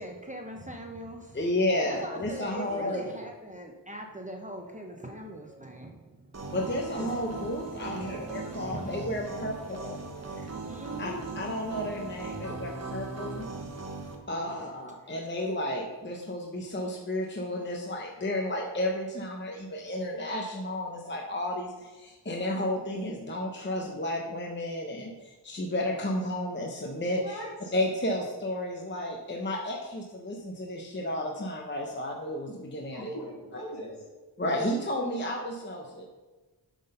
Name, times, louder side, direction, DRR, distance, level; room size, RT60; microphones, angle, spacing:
voice 1, 0.0-1.4 1.8-6.5 6.8-7.4 7.9-9.0 9.7-12.0 12.3-12.6 14.4-14.6, right 1 dB, 15° right, 1 dB, 0.7 m, -42 dB
voice 2, 1.3-3.0 6.5-9.5 9.8-10.0 11.0-13.5 14.3-27.4 27.7-33.1 34.4-36.1, left 1 dB, 25° left, 1 dB, 0.7 m, -32 dB
voice 3, 2.6-3.2 7.9-8.3 27.2-27.7 32.9-34.0, equal, 60° left, -4 dB, 2.6 m, -41 dB
sound 1, 6.3-14.2, right 3 dB, 35° right, 1.1 m, -39 dB
8.0 x 3.8 x 5.4 m, 1.2 s
wide cardioid pair, 110°, 44 cm